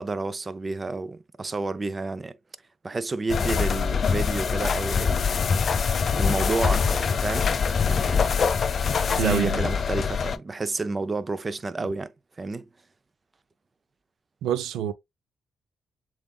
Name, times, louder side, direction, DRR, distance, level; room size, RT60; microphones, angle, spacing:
voice 1, 0.0-2.4 2.8-5.4 5.8-7.6 7.9-8.3 9.1-12.1 12.4-12.7, right 3 dB, 30° right, 0.5 m, -30 dB
sound 1, 3.3-10.4, left 6 dB, 45° left, 0.4 m, -24 dB
voice 2, 9.2-9.6 14.4-14.9, right 10 dB, 85° right, 0.5 m, -26 dB
7.1 x 2.5 x 2.3 m
cardioid pair, 90°, 0 cm